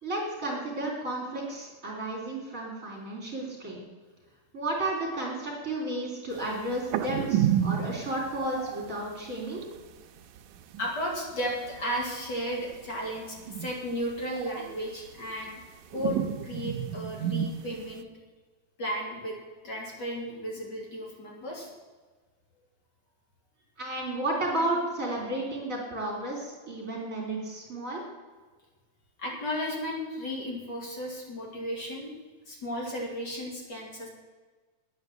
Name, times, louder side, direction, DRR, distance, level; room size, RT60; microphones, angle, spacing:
voice 1, 0.0-3.8 4.5-9.6 23.8-28.0, right 1 dB, 25° right, -2 dB, 3.9 m, -32 dB
sound 1, 6.6-9.0 9.3-9.4 9.6-9.9 10.4-10.9 11.1-12.4 12.8-13.9 14.1-15.7 15.9-18.0, right 10 dB, 85° right, 2.2 m, -30 dB
voice 2, 10.8-15.6 15.9-18.0 18.8-19.4 19.6-21.7 29.2-32.1 32.5-34.1, equal, 35° left, -2 dB, 3.3 m, -34 dB
10.0 x 9.5 x 7.9 m, 1.4 s
omnidirectional pair, 3.6 m